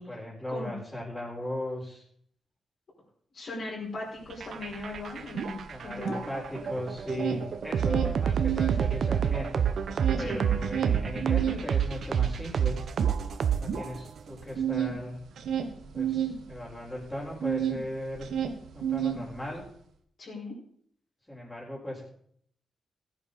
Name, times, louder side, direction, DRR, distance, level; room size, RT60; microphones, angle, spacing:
voice 1, 0.0-2.0 5.7-9.7 10.2-12.8 13.6-15.2 15.9-18.3 18.7-19.7 21.3-22.0, left 1 dB, 10° left, -7 dB, 4.3 m, -37 dB
voice 2, 3.3-6.3 10.2-10.4 20.2-20.5, left 2 dB, 55° left, -5 dB, 5.3 m, -38 dB
sound 1, 4.3-14.1, right 8 dB, 65° right, 0.9 m, -28 dB
sound 2, 4.3-4.4 4.7-6.7 7.0-8.8 9.2-17.8 18.1-19.7, right 9 dB, 80° right, 1.3 m, -32 dB
15.5 x 10.5 x 4.1 m, 0.63 s
cardioid pair, 100°, 0 cm